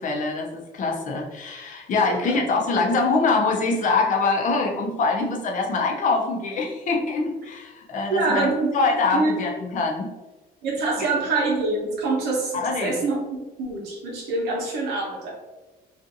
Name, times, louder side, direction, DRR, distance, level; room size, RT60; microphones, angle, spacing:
voice 1, 0.0-8.5 8.7-10.1 11.0-11.1 12.5-13.0, left 3 dB, 50° left, 1 dB, 0.6 m, -24 dB
voice 2, 2.1-2.4 8.1-8.8 9.1-9.3 10.6-15.3, right 3 dB, 85° right, -2 dB, 0.9 m, -25 dB
2.5 x 2.4 x 2.6 m, 1.1 s
cardioid pair, 110°, 17 cm